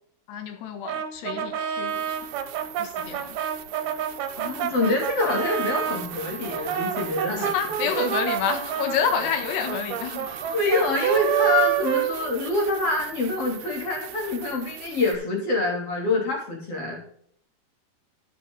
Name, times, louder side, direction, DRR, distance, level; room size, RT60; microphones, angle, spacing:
voice 1, 0.3-2.2 2.8-3.4 4.8-5.0 7.3-10.3, left 7 dB, 85° left, 7 dB, 3.3 m, -29 dB
Brass instrument, 0.8-6.0 6.5-12.8, right 10 dB, 70° right, 2.9 m, -28 dB
sound 1, 1.2-1.3 1.9-15.2, right 13 dB, 85° right, 2.9 m, -40 dB
voice 2, 4.4-7.5 10.5-17.0, left 2 dB, 35° left, -2 dB, 3.6 m, -26 dB
sound 2, 5.7-12.3, right 2 dB, 50° right, 1.7 m, -43 dB
12.0 x 6.9 x 3.7 m, 0.64 s
omnidirectional pair, 4.8 m